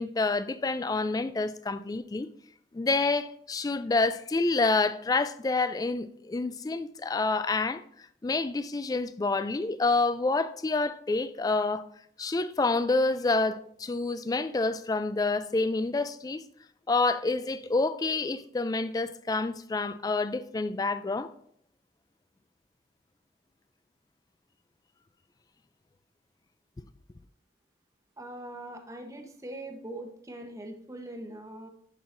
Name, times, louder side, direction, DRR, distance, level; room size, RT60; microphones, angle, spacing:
voice 1, 0.0-2.3 2.7-7.8 8.2-11.9 12.2-16.4 16.9-21.3, left 3 dB, 20° left, 0.3 m, -28 dB
voice 2, 28.2-31.7, right 1 dB, 20° right, 0.9 m, -42 dB
10.0 x 5.6 x 2.6 m
head